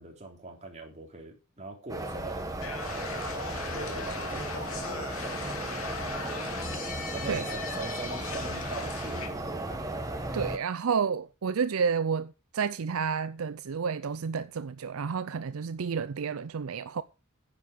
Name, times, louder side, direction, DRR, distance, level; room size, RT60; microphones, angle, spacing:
voice 1, 0.0-2.4 2.8-3.1 3.7-5.7 7.1-9.4, right 2 dB, 30° right, 3.6 m, -42 dB
sound 1, 1.9-10.6, right 1 dB, 15° right, 1.7 m, -35 dB
sound 2, 2.6-9.3, left 4 dB, 65° left, 2.7 m, -38 dB
voice 2, 10.3-17.0, right 6 dB, 65° right, 0.5 m, -30 dB
10.5 x 8.7 x 5.2 m
head